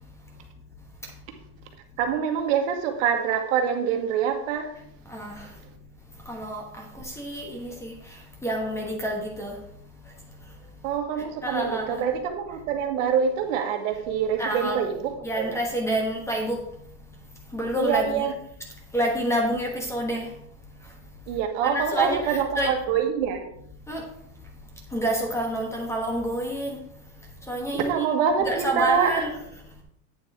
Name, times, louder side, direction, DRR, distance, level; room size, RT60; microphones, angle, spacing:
voice 1, 2.0-4.7 10.8-15.5 17.7-18.3 21.3-23.4 27.7-29.2, right 7 dB, 60° right, 4 dB, 1.6 m, -25 dB
voice 2, 6.3-6.6 7.2-7.9 8.4-9.5 11.4-12.0 14.4-14.8 15.2-16.6 17.5-18.3 18.9-20.2 21.6-22.7 23.9-24.0 24.9-26.8 27.5-28.0 28.4-29.3, right 1 dB, 5° left, 1 dB, 1.2 m, -28 dB
8.8 x 7.1 x 3.6 m, 0.72 s
supercardioid pair, 155°, 44 cm